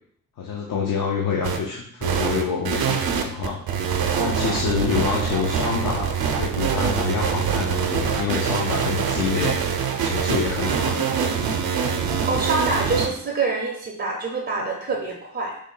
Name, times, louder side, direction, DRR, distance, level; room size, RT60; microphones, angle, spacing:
voice 1, 0.4-3.6 4.2-9.6 10.0-11.0, left 6 dB, 70° left, -1 dB, 0.5 m, -27 dB
sound 1, 1.4-1.6 2.0-13.1, right 7 dB, 85° right, 0.5 m, -24 dB
voice 2, 4.2-4.7 10.7-11.5 12.3-15.6, right 3 dB, 30° right, 0 dB, 0.4 m, -27 dB
3.2 x 2.2 x 3.8 m, 0.68 s
wide cardioid pair, 130°, 35 cm